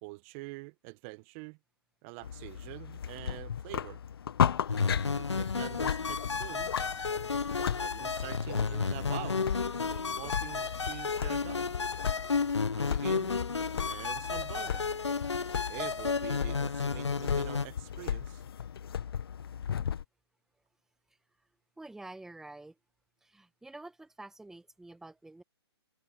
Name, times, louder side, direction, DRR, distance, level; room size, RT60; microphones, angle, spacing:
voice 1, 0.0-1.6 2.0-4.0 5.1-6.7 7.6-9.4 9.8-11.7 12.7-13.4 13.9-14.8 15.7-18.4, right 27 dB, 30° right, 1.8 m, -45 dB
sound 1, 2.2-20.0, left 8 dB, 60° left, 1.7 m, -36 dB
sound 2, 4.7-17.7, left 5 dB, 85° left, 1.2 m, -32 dB
sound 3, 5.3-19.0, left 16 dB, 40° left, 7.4 m, -65 dB
voice 2, 21.8-22.7 23.2-25.4, right 2 dB, 5° right, 2.0 m, -48 dB
hypercardioid pair, 140°, 14 cm